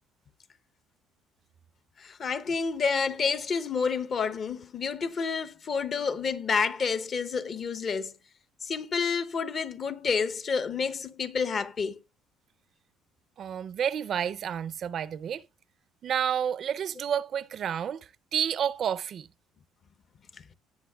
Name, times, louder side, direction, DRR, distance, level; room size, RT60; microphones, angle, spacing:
voice 1, 2.0-8.1 8.6-12.0, left 5 dB, 40° left, 0.7 m, -29 dB
voice 2, 13.4-15.4 16.0-18.0 18.3-19.3, right 8 dB, 50° right, 0.4 m, -30 dB
18.0 x 6.4 x 2.2 m
cardioid pair, 110°, 0 cm